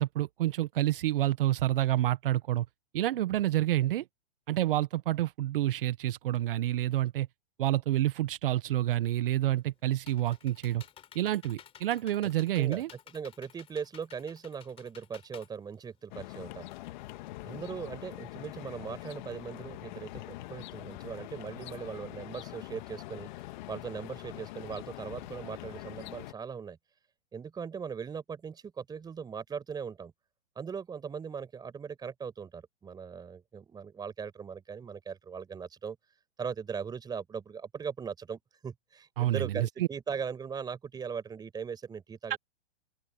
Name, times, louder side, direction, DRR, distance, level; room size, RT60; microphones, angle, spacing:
voice 1, 0.0-2.6 2.9-4.0 4.5-7.3 7.6-10.8 11.1-12.9 39.2-39.9 42.3-42.4, right 14 dB, 55° right, 1.1 m, -28 dB
Computer keyboard, 9.5-16.4, left 9 dB, 15° left, 3.2 m, -54 dB
voice 2, 12.6-16.7 17.4-23.3 23.7-26.8 27.3-30.1 30.5-36.0 36.4-42.4, right 6 dB, 10° right, 4.8 m, -39 dB
sound 1, 16.1-26.3, left 17 dB, 45° left, 1.6 m, -44 dB
open air
hypercardioid pair, 145°, 33 cm